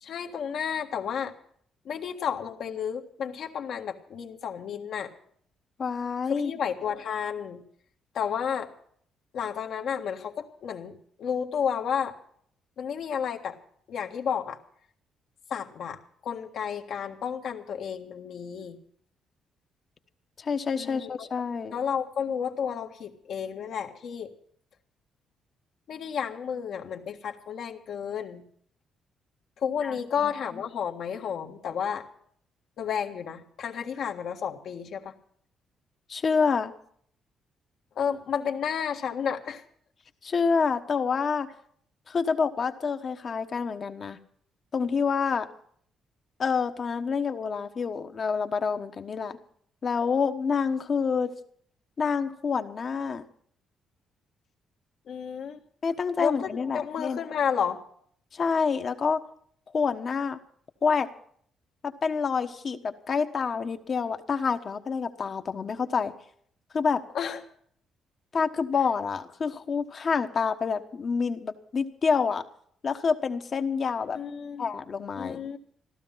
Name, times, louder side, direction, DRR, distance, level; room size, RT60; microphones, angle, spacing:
voice 1, 0.0-1.3 1.8-5.1 6.3-7.6 8.1-8.7 9.3-12.1 12.8-13.6 13.9-14.6 15.5-18.8 20.7-21.3 21.7-24.3 25.9-28.4 29.6-32.0 32.8-35.1 38.0-39.6 55.1-55.6 56.2-57.8 67.1-67.4 74.1-74.7 75.2-75.6, left 7 dB, 70° left, 3 dB, 1.6 m, -31 dB
voice 2, 5.8-6.5 20.4-21.8 29.8-29.9 30.2-30.3 36.1-36.7 40.2-41.5 42.1-44.2 44.7-45.5 46.4-49.4 49.8-51.3 52.0-53.2 55.8-57.2 58.3-59.2 59.7-60.4 60.8-61.1 61.8-66.1 66.7-67.0 68.3-72.4 72.8-74.2 74.6-75.5, left 5 dB, 45° left, 7 dB, 1.2 m, -27 dB
15.5 x 13.0 x 5.7 m, 0.62 s
cardioid pair, 90°, 0 cm